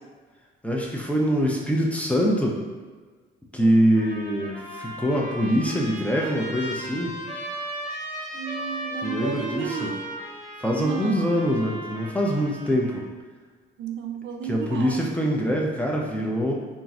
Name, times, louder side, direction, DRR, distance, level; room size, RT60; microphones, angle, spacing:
voice 1, 0.6-2.6 3.5-7.2 9.0-9.9 10.6-13.0 14.5-16.5, equal, 5° left, -2 dB, 0.5 m, -24 dB
Trumpet, 3.9-13.1, right 1 dB, 35° right, 0.9 m, -37 dB
voice 2, 8.3-10.0 10.7-11.3 13.8-15.0, right 7 dB, 75° right, 3 dB, 0.4 m, -33 dB
3.0 x 2.5 x 2.4 m, 1.4 s
cardioid pair, 90°, 20 cm